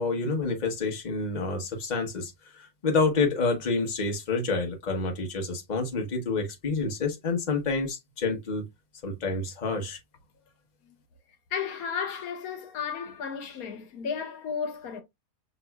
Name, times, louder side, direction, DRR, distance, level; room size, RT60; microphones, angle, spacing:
voice 1, 0.0-8.6 9.0-10.0, left 3 dB, 35° left, 1.0 m, -28 dB
voice 2, 11.5-15.0, left 6 dB, 80° left, 1.2 m, -33 dB
5.9 x 3.0 x 2.2 m
omnidirectional pair, 1.5 m